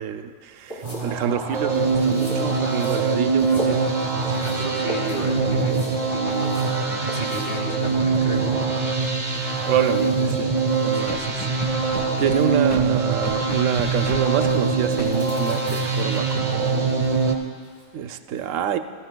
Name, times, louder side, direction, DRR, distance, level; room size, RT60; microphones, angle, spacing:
voice 1, 0.0-3.9 4.1-4.9 9.7-10.5 10.8-11.5 11.9-17.0 17.9-18.8, right 9 dB, 85° right, 9 dB, 1.0 m, -27 dB
sound 1, 0.6-17.8, equal, 70° left, 4.0 m, -42 dB
sound 2, 0.8-17.3, right 4 dB, 35° right, 0.9 m, -23 dB
voice 2, 4.3-8.5 10.9-11.3 12.4-12.8, equal, 50° left, 0 dB, 1.9 m, -33 dB
Scratching (performance technique), 11.1-12.4 12.7-12.8 13.2-14.5 15.0-15.1, equal, 10° left, 1.0 m, -33 dB
20.5 x 13.0 x 2.2 m, 2.1 s
omnidirectional pair, 1.3 m